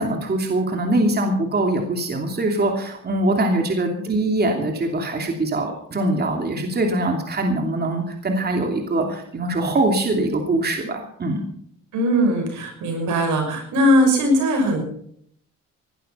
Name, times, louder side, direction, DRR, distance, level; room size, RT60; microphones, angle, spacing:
voice 1, 0.0-11.4, right 2 dB, 35° right, 2 dB, 2.8 m, -23 dB
voice 2, 11.9-14.8, equal, 80° right, 3 dB, 6.0 m, -19 dB
18.5 x 12.0 x 5.6 m, 0.66 s
cardioid pair, 90°, 30 cm